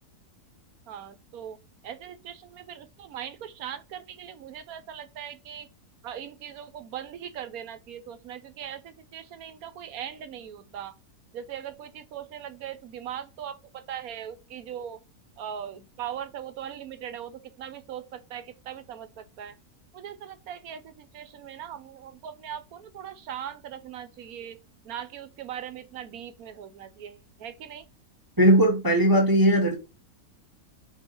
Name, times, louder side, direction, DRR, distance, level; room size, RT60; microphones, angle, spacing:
voice 1, 0.9-1.6 1.8-5.7 6.0-8.8 9.1-10.9 11.3-13.6 13.9-15.0 15.4-17.3 17.6-19.1 19.4-19.5 19.9-24.6 24.9-27.8, right 9 dB, 70° right, 1.2 m, -39 dB
voice 2, 28.4-29.8, right 1 dB, 15° right, 0.9 m, -19 dB
5.3 x 4.9 x 4.5 m
omnidirectional pair, 1.7 m